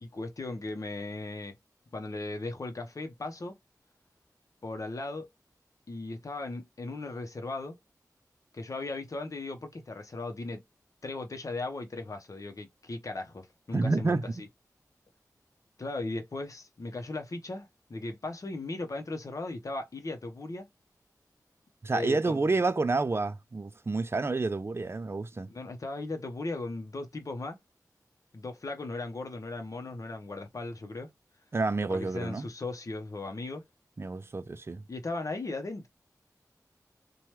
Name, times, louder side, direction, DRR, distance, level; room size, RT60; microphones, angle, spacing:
voice 1, 0.0-1.5 1.9-3.6 4.6-5.3 5.9-7.8 8.5-10.6 11.0-14.5 15.8-20.7 21.9-22.5 25.5-27.6 28.3-31.1 31.8-33.6 34.9-35.9, left 2 dB, 55° left, 0.7 m, -37 dB
voice 2, 13.7-14.2 21.8-25.5 31.5-32.5 34.0-34.8, right 3 dB, 40° right, 0.4 m, -29 dB
2.9 x 2.2 x 3.1 m
wide cardioid pair, 75°, 7 cm